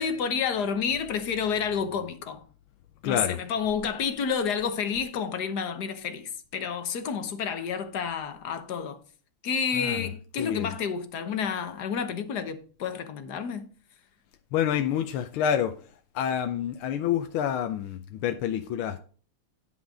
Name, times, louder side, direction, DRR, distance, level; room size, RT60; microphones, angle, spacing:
voice 1, 0.0-2.4 3.0-9.0 9.4-13.6, left 6 dB, 55° left, 1.4 m, -30 dB
voice 2, 3.0-3.4 9.7-10.1 10.4-10.7 14.5-15.7 16.1-19.0, left 9 dB, 75° left, 1.5 m, -28 dB
10.5 x 5.6 x 4.8 m
omnidirectional pair, 2.4 m